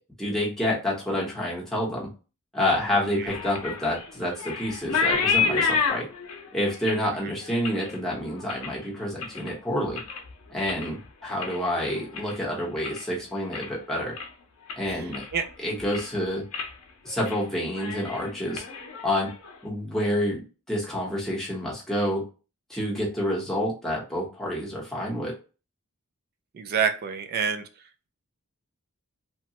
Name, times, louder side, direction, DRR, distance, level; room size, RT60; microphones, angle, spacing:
voice 1, 0.2-2.1 2.5-6.1 6.5-10.0 10.5-14.1 14.8-15.2 15.6-16.4 17.0-18.6 19.0-19.3 19.6-22.2 22.7-25.3, left 1 dB, ahead, -5 dB, 0.9 m, -28 dB
sound 1, 2.8-9.5 9.8-10.3 10.6-13.1 13.4-13.8 14.2-14.3 14.7-15.5 15.8-16.2 16.5-16.7 17.1-17.4 17.7-19.5, left 5 dB, 75° left, 0.6 m, -30 dB
voice 2, 26.5-27.6, right 6 dB, 45° right, 7 dB, 0.4 m, -26 dB
2.9 x 2.2 x 2.8 m, 0.34 s
head